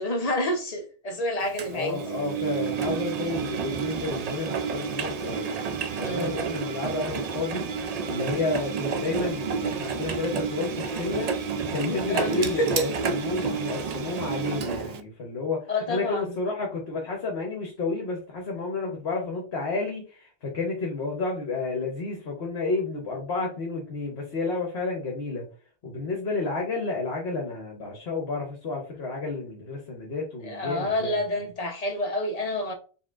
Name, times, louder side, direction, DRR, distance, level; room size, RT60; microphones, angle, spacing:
voice 1, 0.0-2.0 5.9-6.4 12.1-12.9 15.7-16.3 30.4-32.7, left 1 dB, 35° left, 0.9 m, -28 dB
Engine, 1.6-15.0, right 6 dB, 65° right, 0.4 m, -30 dB
voice 2, 1.7-7.7 8.0-25.5 25.8-31.2, left 3 dB, 55° left, 1.2 m, -31 dB
4.1 x 3.9 x 2.5 m
omnidirectional pair, 1.3 m